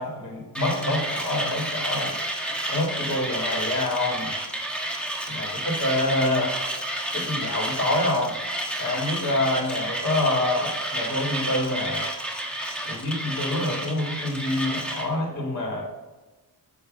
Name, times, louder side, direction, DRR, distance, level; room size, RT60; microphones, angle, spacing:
voice 1, 0.0-2.2 2.7-4.3 5.3-6.5 7.1-8.4 8.8-12.1 12.8-15.8, left 1 dB, 40° left, -1 dB, 2.1 m, -26 dB
Mechanisms, 0.5-15.1, right 1 dB, 5° left, 1.4 m, -30 dB
7.2 x 3.2 x 5.3 m, 1.1 s
cardioid pair, 65°, 42 cm